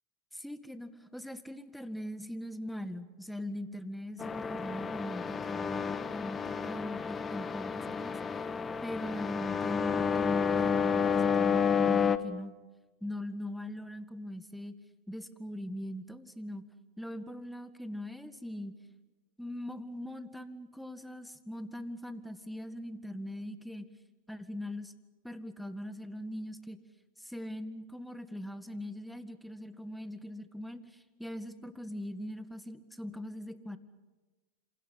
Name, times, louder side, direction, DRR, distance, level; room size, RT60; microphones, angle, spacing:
voice 1, 0.3-8.2 8.8-12.5 13.0-14.7 15.1-16.6 17.0-18.8 19.4-23.9 24.3-24.9 25.2-26.8 27.2-33.8, left 1 dB, ahead, 10 dB, 1.9 m, -41 dB
sound 1, 4.2-12.2, left 6 dB, 25° left, 1.4 m, -30 dB
28.0 x 27.5 x 5.7 m, 1.2 s
hypercardioid pair, 95°, 0 cm